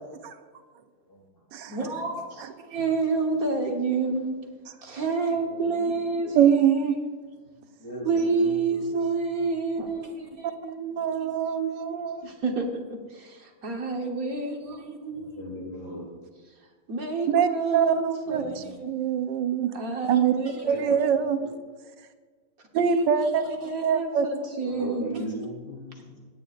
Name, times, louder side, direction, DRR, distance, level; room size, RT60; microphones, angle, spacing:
voice 1, 1.7-2.1 2.7-4.3 5.0-7.0 8.0-10.1 10.6-11.0 12.4-12.6 13.6-14.8 15.1-15.2 16.9-18.5 19.8-21.3 22.7-23.1 23.3-25.2, right 4 dB, 55° right, 2 dB, 1.6 m, -28 dB
voice 2, 5.4-5.7 6.2-6.3 7.8-9.0 9.3-9.5 15.1-16.1 20.6-21.0 21.4-21.5 24.6-26.2, equal, 60° left, -4 dB, 4.1 m, -38 dB
voice 3, 6.3-6.9 8.9-9.2 11.0-12.3 17.3-19.7 20.1-21.4 22.7-23.4 23.8-24.3 25.0-25.1, right 8 dB, 90° right, 9 dB, 1.4 m, -24 dB
17.0 x 9.3 x 2.5 m, 1.5 s
omnidirectional pair, 1.9 m